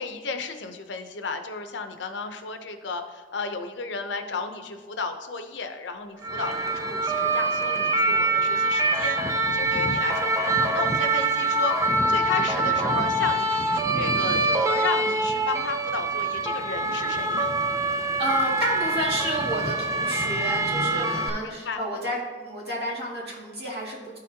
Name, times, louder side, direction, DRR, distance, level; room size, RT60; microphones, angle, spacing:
voice 1, 0.0-17.6 21.4-21.8, left 4 dB, 90° left, 7 dB, 0.7 m, -33 dB
sound 1, 6.2-21.3, right 2 dB, 15° right, 0.4 m, -25 dB
voice 2, 18.2-24.2, right 1 dB, 65° right, -4 dB, 2.1 m, -30 dB
11.5 x 4.1 x 2.8 m, 1.4 s
head